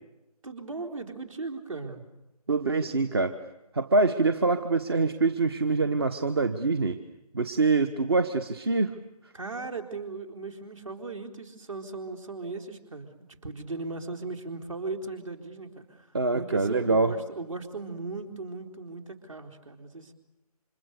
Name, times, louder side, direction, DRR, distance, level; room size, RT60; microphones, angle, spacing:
voice 1, 0.4-2.1 9.3-16.1 16.3-20.1, right 3 dB, 55° right, 4 dB, 4.0 m, -37 dB
voice 2, 2.5-3.4 3.7-7.0 7.3-8.9 16.1-17.1, right 3 dB, 40° right, 11 dB, 1.2 m, -25 dB
29.5 x 26.5 x 6.8 m, 0.96 s
figure-of-eight pair, 155°, 20 cm